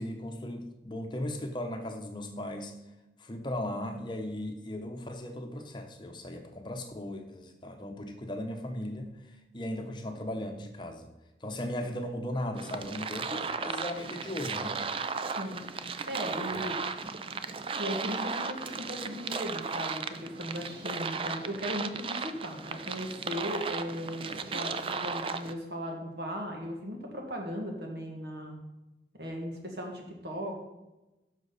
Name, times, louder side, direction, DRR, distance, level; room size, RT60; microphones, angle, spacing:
voice 1, 0.0-2.7 3.2-9.2 9.5-11.1 11.4-14.8 16.5-16.6, left 1 dB, 25° left, 5 dB, 0.9 m, -37 dB
sound 1, 12.6-25.5, right 5 dB, 30° right, 0.4 m, -35 dB
voice 2, 15.4-16.8 17.8-28.6 29.1-30.6, equal, 70° right, 1 dB, 2.0 m, -37 dB
10.0 x 6.4 x 4.1 m, 1.0 s
head